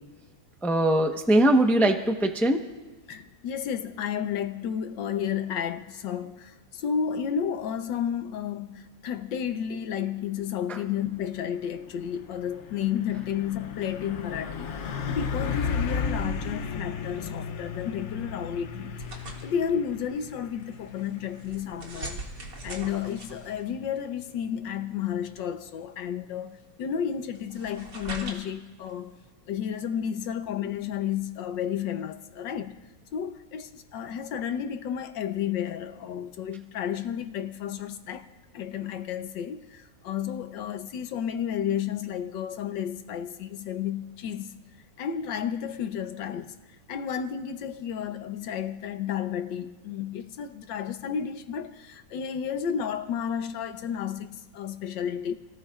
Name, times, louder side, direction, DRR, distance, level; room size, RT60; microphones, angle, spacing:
voice 1, 0.6-2.6 10.7-10.8, right 1 dB, ahead, 0.6 m, -21 dB
voice 2, 3.1-22.2 22.6-29.2 29.5-32.8 33.1-38.3 38.5-44.5 45.0-46.6 46.9-55.3, left 8 dB, 80° left, 1.6 m, -32 dB
Truck, 11.1-25.4, left 5 dB, 55° left, 0.8 m, -35 dB
sound 1, 19.0-29.3, right 2 dB, 70° right, 2.8 m, -44 dB
29.5 x 18.5 x 2.5 m
omnidirectional pair, 2.0 m